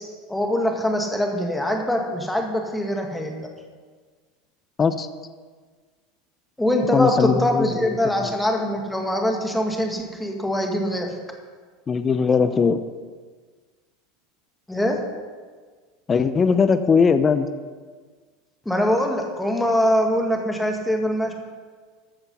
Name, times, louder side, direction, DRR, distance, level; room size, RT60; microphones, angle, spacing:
voice 1, 0.3-3.5 6.6-11.2 14.7-15.0 18.7-21.3, left 1 dB, 5° left, 2 dB, 2.1 m, -23 dB
voice 2, 6.9-7.9 8.2-8.3 11.9-12.8 16.1-17.5, left 5 dB, 30° left, 11 dB, 0.7 m, -20 dB
13.5 x 6.8 x 5.5 m, 1.5 s
hypercardioid pair, 95°, 0 cm